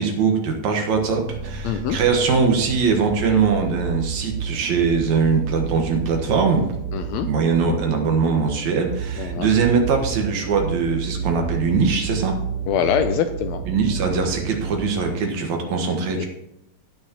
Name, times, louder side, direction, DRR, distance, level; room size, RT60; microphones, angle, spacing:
voice 1, 0.0-6.6 7.2-12.3 13.7-16.3, right 5 dB, 70° right, 3 dB, 2.6 m, -21 dB
sound 1, 0.9-15.3, right 7 dB, 90° right, 1.4 m, -31 dB
sound 2, 1.2-5.3, left 1 dB, 45° left, 3.0 m, -39 dB
voice 2, 1.6-2.0 6.9-7.3 9.2-9.5 12.7-13.6 16.2-16.3, left 8 dB, 80° left, 8 dB, 1.6 m, -23 dB
16.0 x 6.4 x 2.9 m, 0.84 s
omnidirectional pair, 3.5 m